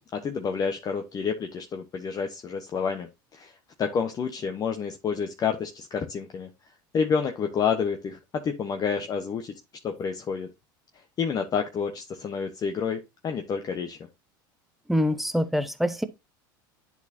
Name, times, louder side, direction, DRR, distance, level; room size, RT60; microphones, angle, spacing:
voice 1, 0.0-3.5 3.8-6.5 6.9-9.5 9.8-10.5 11.2-14.0, left 6 dB, 35° left, 0.9 m, -29 dB
voice 2, 14.9-16.0, equal, ahead, 0.8 m, -25 dB
10.5 x 4.2 x 2.7 m
hypercardioid pair, 90°, 11 cm